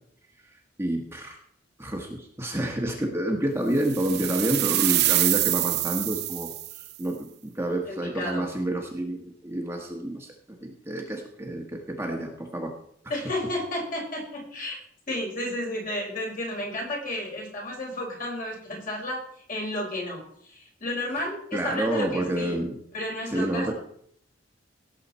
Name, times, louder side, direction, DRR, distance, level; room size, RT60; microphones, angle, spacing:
voice 1, 0.8-1.4 1.8-12.7 21.5-22.8 23.3-23.7, right 1 dB, 15° right, 1 dB, 1.4 m, -29 dB
sound 1, 3.9-6.9, right 16 dB, 60° right, 0.5 m, -25 dB
voice 2, 7.9-8.5 13.1-14.8 15.1-19.2 19.5-22.6 22.9-23.7, left 1 dB, 45° left, -2 dB, 5.0 m, -32 dB
17.5 x 7.6 x 4.2 m, 0.67 s
head